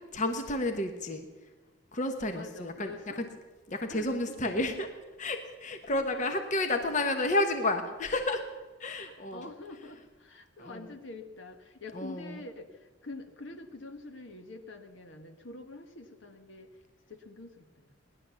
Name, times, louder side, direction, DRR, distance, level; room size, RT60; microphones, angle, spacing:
voice 1, 0.1-1.3 1.9-3.2 3.7-4.9 5.2-8.4 8.8-9.5 10.6-10.9 11.9-12.4, left 2 dB, 35° left, 6 dB, 1.1 m, -31 dB
voice 2, 2.3-3.2 3.9-4.1 4.4-4.6 5.9-6.2 9.0-16.8 17.1-18.0, left 2 dB, 65° left, 6 dB, 1.3 m, -46 dB
18.5 x 11.0 x 7.0 m, 1.3 s
head